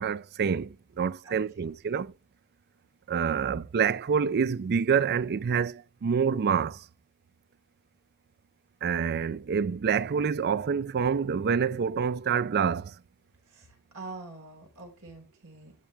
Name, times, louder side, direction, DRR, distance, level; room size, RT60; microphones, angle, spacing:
voice 1, 0.0-2.1 3.1-6.8 8.8-12.9, right 6 dB, 45° right, 0.4 m, -27 dB
voice 2, 1.2-1.7 2.0-2.1 13.5-15.7, right 3 dB, 70° right, 4.4 m, -45 dB
12.5 x 5.9 x 3.4 m
head